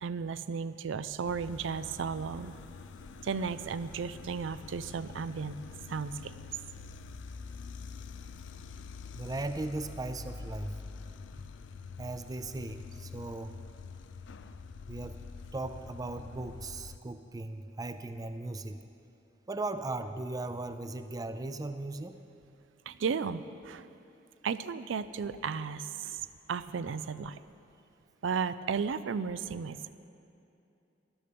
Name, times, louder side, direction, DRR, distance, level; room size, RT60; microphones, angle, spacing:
voice 1, 0.0-2.5 3.2-5.6 5.9-6.3 22.9-23.9 24.4-26.2 26.5-27.4 28.2-29.9, right 5 dB, 85° right, 14 dB, 0.4 m, -34 dB
sound 1, 1.2-17.0, left 4 dB, 75° left, 0.5 m, -46 dB
voice 2, 9.1-10.7 11.3-11.4 12.0-13.6 14.9-15.2 15.5-18.8 19.5-22.2, right 2 dB, 20° right, 10 dB, 0.4 m, -37 dB
13.5 x 11.5 x 5.2 m, 2.7 s
head